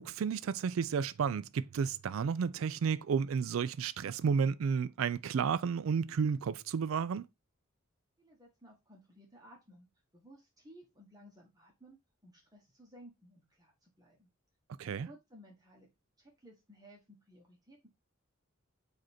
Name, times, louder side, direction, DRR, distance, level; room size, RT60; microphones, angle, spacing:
voice 1, 0.0-7.3 14.8-15.1, right 6 dB, 75° right, 0.3 m, -32 dB
voice 2, 8.2-9.9 10.1-12.0 12.2-14.3 14.8-15.9 16.2-17.9, equal, 20° right, 1.0 m, -58 dB
5.0 x 2.6 x 4.1 m
head